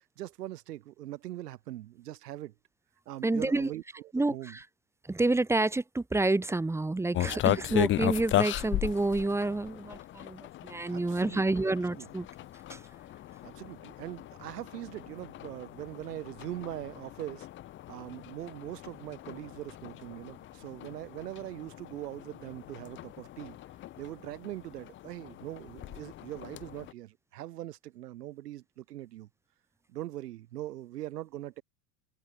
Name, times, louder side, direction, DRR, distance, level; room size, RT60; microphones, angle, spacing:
voice 1, 0.0-2.5 3.0-4.6 7.3-7.4 7.7-7.8 10.9-12.1 13.4-17.5 17.9-23.6 24.0-29.3 29.9-31.6, right 14 dB, 80° right, 6.7 m, -42 dB
voice 2, 3.2-3.7 4.1-4.6 5.0-12.3 12.7-12.8, right 2 dB, 5° right, 1.2 m, -29 dB
sound 1, 7.1-26.9, left 14 dB, 25° left, 0.8 m, -37 dB
supercardioid pair, 135°, 46 cm